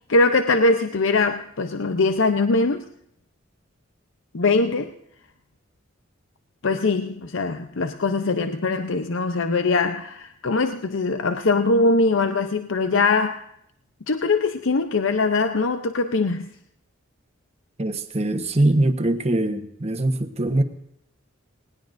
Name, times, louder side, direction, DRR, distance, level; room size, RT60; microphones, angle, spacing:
voice 1, 0.1-2.8 4.3-4.9 6.6-13.4 14.1-16.5, left 3 dB, 75° left, 8 dB, 0.7 m, -22 dB
voice 2, 17.8-20.6, right 1 dB, 35° right, 7 dB, 1.1 m, -22 dB
20.0 x 19.0 x 2.6 m, 0.74 s
head